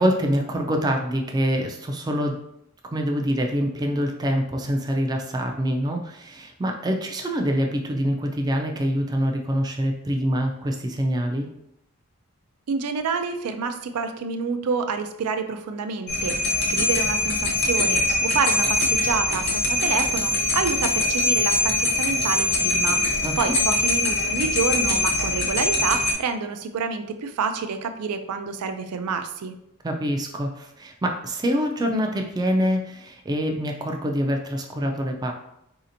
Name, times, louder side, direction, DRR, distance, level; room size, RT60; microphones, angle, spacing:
voice 1, 0.0-2.4 2.9-11.5 23.2-23.5 29.8-35.3, equal, 20° right, 2 dB, 0.3 m, -25 dB
voice 2, 12.7-23.0 23.4-29.5, right 5 dB, 85° right, 8 dB, 0.4 m, -28 dB
sound 1, 16.1-26.1, left 2 dB, 50° left, 0.6 m, -23 dB
4.1 x 2.8 x 2.6 m, 0.78 s
head